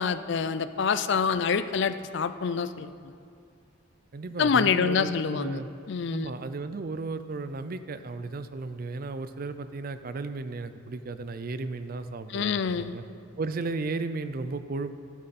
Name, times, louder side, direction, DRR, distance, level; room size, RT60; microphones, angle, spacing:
voice 1, 0.0-2.9 4.4-6.3 12.3-12.9, left 6 dB, 60° left, 13 dB, 0.4 m, -26 dB
voice 2, 4.1-5.7 6.1-13.0 13.4-14.9, right 3 dB, 45° right, 11 dB, 0.5 m, -34 dB
12.5 x 11.5 x 4.2 m, 2.4 s
head